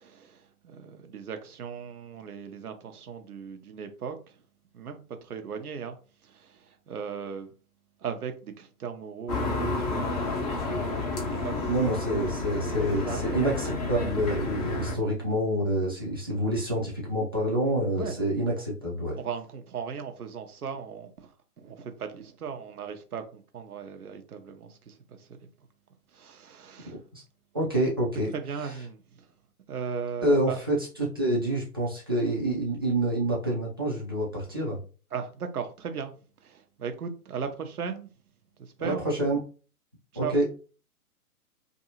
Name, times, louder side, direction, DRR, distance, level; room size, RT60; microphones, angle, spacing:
voice 1, 0.0-4.4 4.7-6.0 6.2-7.5 8.0-10.3 11.3-11.7 13.0-13.5 17.9-18.2 18.6-18.7 19.2-25.4 26.1-27.0 28.3-29.3 29.7-30.6 35.1-36.1 36.4-38.1 38.6-39.0 40.1-40.3, right 6 dB, 75° right, 0.7 m, -37 dB
sound 1, 9.3-15.0, left 2 dB, 25° left, 0.6 m, -30 dB
voice 2, 11.6-19.2 26.8-27.2 27.5-28.3 30.2-34.8 38.8-39.4 40.1-40.4, right 1 dB, 15° right, 0.4 m, -27 dB
2.6 x 2.6 x 2.8 m
figure-of-eight pair, 130°, 45 cm